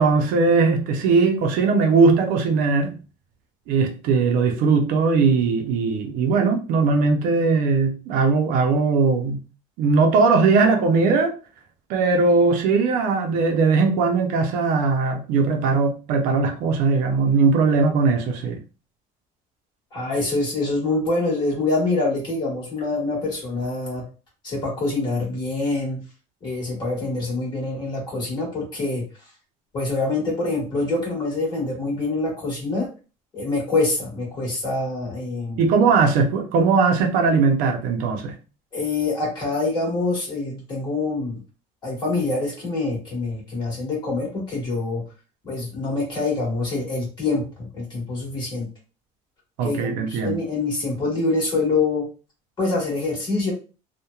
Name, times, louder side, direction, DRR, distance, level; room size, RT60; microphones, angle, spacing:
voice 1, 0.0-2.9 3.7-9.4 9.8-11.3 11.9-18.6 35.6-38.3 49.6-50.4, right 4 dB, 60° right, 0.5 m, -19 dB
voice 2, 19.9-24.0 24.4-26.0 26.4-29.0 29.7-32.9 33.3-35.7 38.7-41.4 41.8-45.0 45.4-48.7 49.6-52.0 52.6-53.5, left 3 dB, 30° left, 1.2 m, -25 dB
2.8 x 2.1 x 2.2 m
cardioid pair, 165°, 16 cm